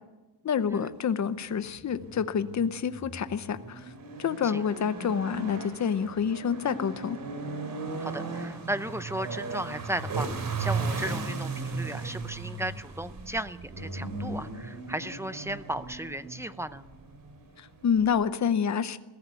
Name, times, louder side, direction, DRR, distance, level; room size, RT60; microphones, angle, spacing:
voice 1, 0.4-3.8 4.2-7.2 17.6-19.0, left 7 dB, 45° left, 12 dB, 0.8 m, -28 dB
sound 1, 1.6-18.3, right 3 dB, 55° right, 2.8 m, -36 dB
voice 2, 8.0-10.3 10.6-16.8, right 1 dB, 5° right, 12 dB, 0.6 m, -35 dB
21.5 x 15.0 x 8.3 m, 1.1 s
wide cardioid pair, 170°, 40 cm